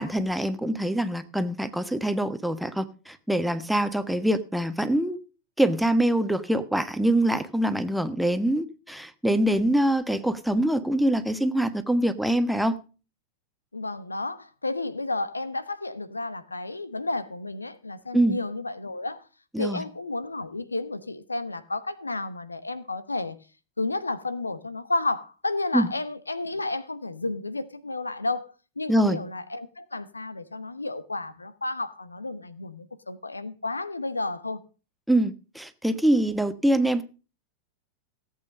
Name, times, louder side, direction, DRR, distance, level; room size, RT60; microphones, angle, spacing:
voice 1, 0.0-5.2 5.6-12.8 18.1-18.4 19.5-19.8 25.7-25.9 28.9-29.2 35.1-37.0, right 1 dB, ahead, 1.2 m, -24 dB
voice 2, 13.7-19.3 19.6-23.4 23.8-34.6, left 2 dB, 80° left, 1.0 m, -32 dB
17.0 x 8.5 x 5.2 m
figure-of-eight pair, 90°, 0 cm